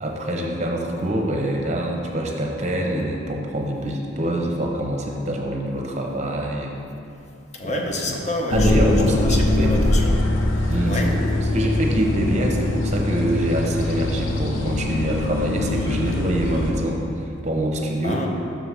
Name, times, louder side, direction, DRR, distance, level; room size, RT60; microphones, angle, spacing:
voice 1, 0.0-6.7 7.6-8.1 8.5-9.8 10.7-11.3 11.5-18.2, right 1 dB, 35° right, 1 dB, 0.7 m, -25 dB
voice 2, 7.5-10.2 10.9-11.1 18.0-18.3, left 1 dB, 35° left, 1 dB, 0.7 m, -28 dB
sound 1, 8.5-16.7, left 2 dB, 75° left, 0.7 m, -22 dB
6.2 x 4.7 x 5.6 m, 2.6 s
head